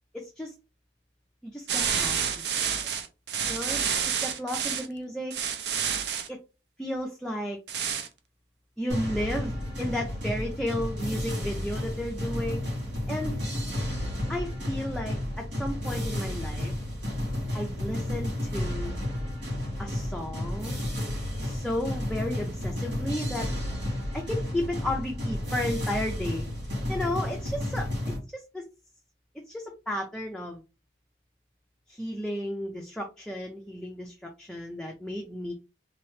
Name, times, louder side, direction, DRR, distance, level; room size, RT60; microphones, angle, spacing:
voice 1, 0.1-0.5 1.4-2.2 2.6-2.8 3.5-5.4 6.3-6.4 6.8-7.6 8.8-12.7 13.1-13.4 14.3-16.7 17.5-19.0 19.8-20.8 21.4-23.5 24.1-26.5 26.9-27.9 28.3-28.6 29.5-30.6 31.9-35.5, left 1 dB, 5° left, 0 dB, 0.4 m, -33 dB
sound 1, 1.7-4.9 5.3-6.3 7.7-8.1, right 7 dB, 65° right, 0.6 m, -29 dB
sound 2, 8.9-28.2, left 1 dB, 85° right, 2.2 m, -32 dB
3.5 x 2.9 x 3.2 m, 0.29 s
head